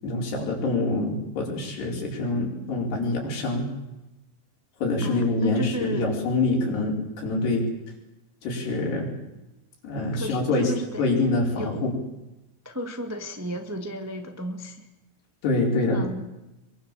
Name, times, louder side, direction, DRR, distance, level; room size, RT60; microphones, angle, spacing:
voice 1, 0.0-3.7 4.8-7.7 8.4-9.1 9.8-10.7 11.0-12.0 15.4-16.0, left 2 dB, 90° left, -1 dB, 7.1 m, -25 dB
voice 2, 5.0-6.1 10.1-11.1 11.6-11.8 12.6-14.9 15.9-16.3, equal, 25° right, 4 dB, 0.3 m, -34 dB
24.0 x 23.5 x 7.7 m, 0.99 s
omnidirectional pair, 4.6 m